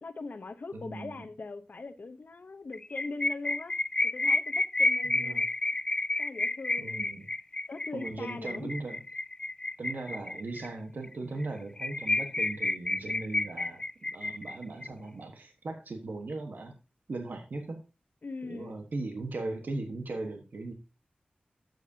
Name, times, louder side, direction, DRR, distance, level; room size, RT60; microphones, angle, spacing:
voice 1, 0.0-3.7 4.0-5.5 6.2-7.0 7.7-8.7 18.2-18.7, left 3 dB, 65° left, 0.8 m, -41 dB
voice 2, 0.7-1.1 5.0-5.4 6.8-7.3 7.9-9.0 9.8-13.8 14.1-16.7 17.1-17.8 18.5-20.7, right 2 dB, 70° right, 1.3 m, -38 dB
sound 1, 2.7-10.7 11.0-11.1 11.4-11.5 11.8-14.9, left 2 dB, 25° left, 0.3 m, -30 dB
11.5 x 7.9 x 2.8 m
cardioid pair, 55°, 3 cm